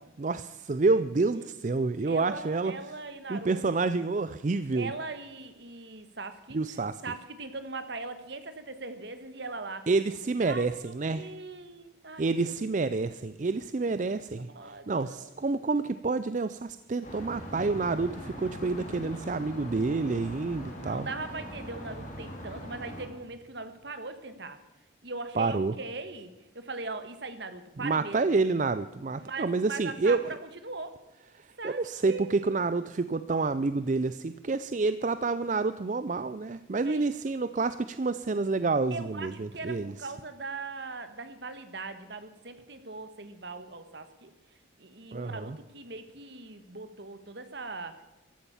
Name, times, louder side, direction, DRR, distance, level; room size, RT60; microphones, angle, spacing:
voice 1, 0.2-2.7 3.3-4.9 6.5-7.0 9.9-11.3 12.2-14.5 14.9-21.1 25.4-25.7 27.8-30.2 31.4-39.9 45.1-45.6, right 3 dB, 40° right, 13 dB, 0.4 m, -28 dB
voice 2, 2.0-3.6 4.7-6.6 7.0-9.9 10.4-12.5 14.3-15.3 20.8-24.6 25.0-28.2 29.2-31.0 31.6-32.4 36.8-37.3 38.9-44.3 44.8-48.0, right 3 dB, 60° right, 10 dB, 1.5 m, -40 dB
sound 1, 17.0-23.1, equal, 40° left, 3.8 m, -41 dB
15.0 x 11.5 x 7.2 m, 1.0 s
head